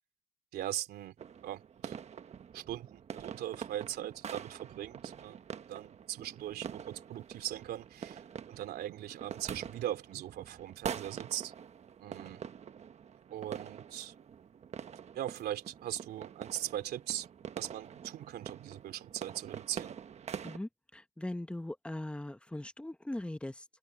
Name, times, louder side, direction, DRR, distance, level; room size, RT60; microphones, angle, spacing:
voice 1, 0.5-1.1 1.4-2.0 2.5-5.4 5.7-8.2 8.5-11.5 12.0-12.4 13.3-14.1 15.1-17.3 17.5-19.9, right 12 dB, 70° right, 3.2 m, -40 dB
sound 1, 1.2-20.6, right 8 dB, 40° right, 1.2 m, -45 dB
voice 2, 20.4-23.6, left 1 dB, 5° left, 1.3 m, -40 dB
open air
cardioid pair, 110°, 17 cm